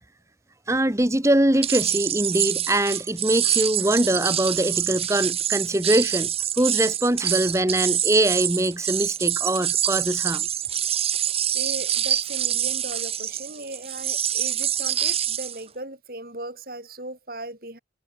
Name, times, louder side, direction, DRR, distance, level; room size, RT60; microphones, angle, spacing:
voice 1, 0.7-6.3 6.6-10.4, right 1 dB, 15° right, 1.2 m, -22 dB
sound 1, 1.6-15.6, right 10 dB, 30° right, 1.7 m, -26 dB
voice 2, 11.5-17.8, right 1 dB, 50° right, 7.9 m, -38 dB
head